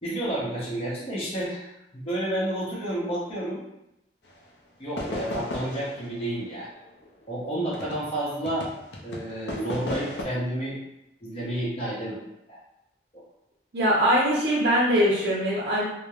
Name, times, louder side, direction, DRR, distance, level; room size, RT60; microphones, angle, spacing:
voice 1, 0.0-3.6 4.8-6.7 7.3-8.7 9.0-10.8 11.2-12.6, right 1 dB, 30° left, -8 dB, 0.7 m, -30 dB
sound 1, 4.3-4.4 5.0-8.2 8.4-10.2, left 1 dB, 65° left, 0.4 m, -35 dB
voice 2, 13.7-15.8, equal, 60° right, -6 dB, 0.6 m, -22 dB
2.9 x 2.1 x 2.3 m, 0.86 s
head